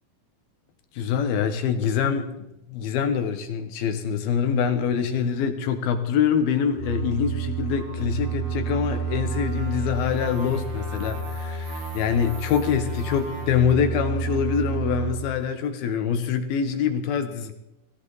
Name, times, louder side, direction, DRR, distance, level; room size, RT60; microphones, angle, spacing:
voice 1, 0.9-17.5, left 7 dB, 75° left, 7 dB, 3.0 m, -25 dB
sound 1, 6.7-15.1, right 4 dB, 60° right, 4.6 m, -30 dB
17.5 x 16.5 x 4.0 m, 0.89 s
omnidirectional pair, 4.5 m